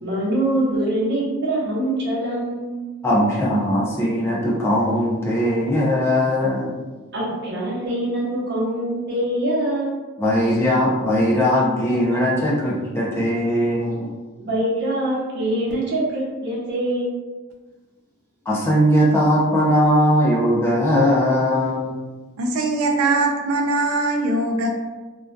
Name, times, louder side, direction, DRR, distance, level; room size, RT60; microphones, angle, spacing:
voice 1, 0.0-3.0 7.1-9.9 14.4-17.2, right 1 dB, 55° right, -5 dB, 0.7 m, -24 dB
voice 2, 3.0-6.8 10.2-14.1 18.5-21.9, equal, 10° left, -5 dB, 0.4 m, -19 dB
voice 3, 22.4-24.7, right 2 dB, 85° right, 2 dB, 0.3 m, -21 dB
2.5 x 2.2 x 2.2 m, 1.2 s
head